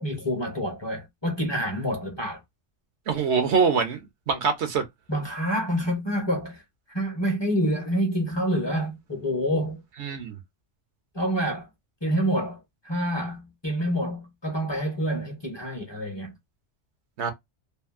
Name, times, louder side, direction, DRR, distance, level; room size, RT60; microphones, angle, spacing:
voice 1, 0.0-2.4 5.1-6.6 6.9-9.8 11.1-11.7 12.0-16.3, equal, 25° left, 0.9 m, -27 dB
voice 2, 3.1-4.8 10.0-10.4 17.2-17.3, right 5 dB, 65° right, 1.0 m, -24 dB
2.7 x 2.5 x 2.4 m
omnidirectional pair, 1.3 m